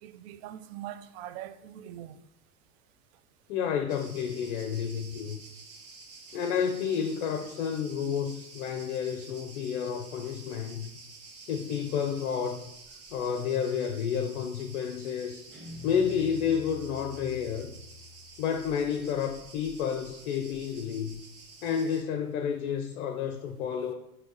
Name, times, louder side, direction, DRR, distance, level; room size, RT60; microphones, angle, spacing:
voice 1, 0.0-2.2, right 11 dB, 50° right, 0.4 m, -42 dB
voice 2, 3.5-5.4 6.3-10.9 11.5-12.6 13.1-15.4 15.8-17.7 18.4-21.2 21.6-23.9, left 7 dB, 65° left, 0.6 m, -30 dB
Cricket, 3.9-22.0, right 4 dB, 35° right, 1.0 m, -50 dB
Guitar, 15.5-18.7, left 5 dB, 70° right, 1.7 m, -46 dB
4.6 x 2.9 x 3.8 m
figure-of-eight pair, 75°, 43 cm